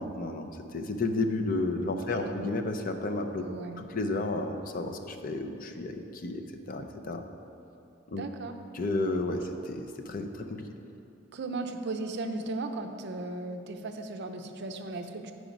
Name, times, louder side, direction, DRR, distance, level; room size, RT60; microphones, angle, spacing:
voice 1, 0.0-3.4 3.8-7.2 8.1-8.2 8.7-10.7, left 2 dB, 45° left, 5 dB, 0.5 m, -32 dB
voice 2, 2.0-2.5 3.4-3.8 8.1-8.6 11.3-15.3, right 2 dB, 55° right, 6 dB, 0.5 m, -36 dB
8.8 x 4.9 x 5.1 m, 2.7 s
head